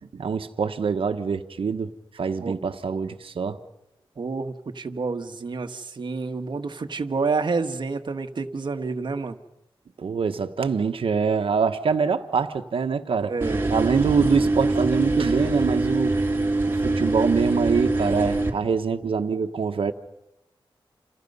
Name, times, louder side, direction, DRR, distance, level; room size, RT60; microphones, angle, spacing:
voice 1, 0.1-3.6 10.0-13.3 13.7-16.2 16.7-19.9, right 5 dB, 80° right, 1.2 m, -24 dB
voice 2, 4.2-9.4 13.2-13.7, right 4 dB, 60° right, 1.4 m, -29 dB
sound 1, 13.4-18.5, right 2 dB, 25° right, 3.0 m, -23 dB
29.0 x 28.0 x 5.5 m
wide cardioid pair, 120°, 9 cm